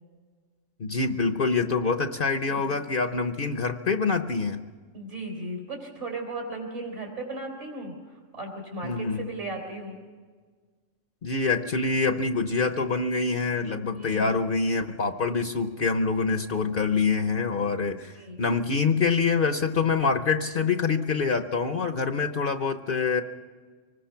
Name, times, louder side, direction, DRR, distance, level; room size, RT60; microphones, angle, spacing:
voice 1, 0.8-4.6 8.8-9.3 11.2-18.1 18.4-23.2, left 4 dB, 50° left, 8 dB, 1.0 m, -25 dB
voice 2, 4.9-10.0 13.7-14.4 18.1-18.4, right 2 dB, 65° right, -2 dB, 4.1 m, -36 dB
25.0 x 20.0 x 5.8 m, 1.5 s
omnidirectional pair, 1.3 m